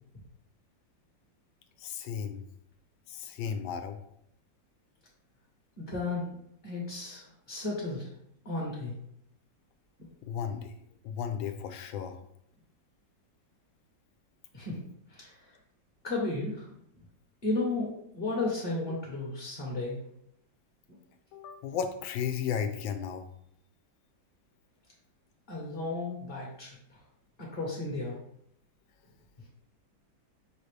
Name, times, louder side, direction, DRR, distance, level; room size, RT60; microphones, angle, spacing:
voice 1, 1.8-2.4 3.1-4.0 10.2-10.7 11.0-12.2 21.3-23.2, left 7 dB, 90° left, 8 dB, 1.3 m, -34 dB
voice 2, 5.8-6.4 6.6-8.1 8.4-8.9 14.5-15.6 16.0-16.7 17.4-20.0 20.9-21.0 25.5-26.7 27.4-28.2, left 2 dB, 40° left, -4 dB, 0.9 m, -34 dB
5.7 x 2.7 x 3.2 m, 0.73 s
omnidirectional pair, 2.1 m